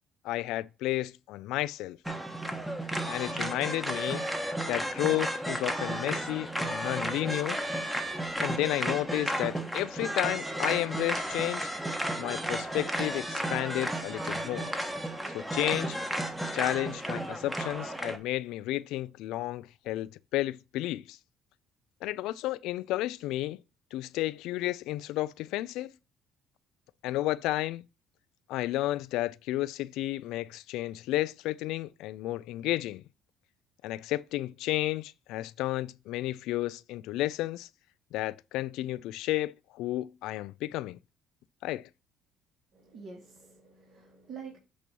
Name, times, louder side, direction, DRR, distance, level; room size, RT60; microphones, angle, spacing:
voice 1, 0.2-2.0 3.1-4.3 4.7-7.6 8.4-11.7 12.2-14.7 15.3-16.0 16.5-21.2 22.0-23.6 23.9-25.9 27.0-27.9 28.5-33.0 33.8-37.7 38.1-41.0 41.6-41.9, left 16 dB, 80° left, 0.3 m, -32 dB
sound 1, 2.1-18.2, right 1 dB, 5° right, 1.2 m, -33 dB
voice 2, 42.7-44.6, right 5 dB, 50° right, 2.2 m, -47 dB
8.5 x 3.0 x 5.2 m
cardioid pair, 95°, 0 cm